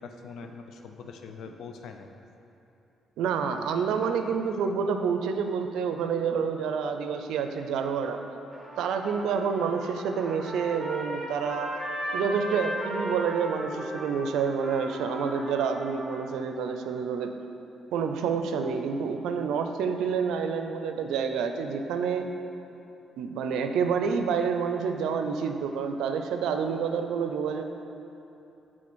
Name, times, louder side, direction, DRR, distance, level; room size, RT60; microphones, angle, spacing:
voice 1, 0.0-2.1, left 5 dB, 75° left, 5 dB, 0.6 m, -43 dB
voice 2, 3.2-8.2 8.8-11.7 12.1-17.3 17.9-22.3 23.2-27.6, right 6 dB, 85° right, 6 dB, 0.5 m, -28 dB
Trumpet, 8.5-16.2, right 1 dB, 10° right, 1.6 m, -36 dB
7.5 x 3.7 x 6.2 m, 2.9 s
cardioid pair, 90°, 0 cm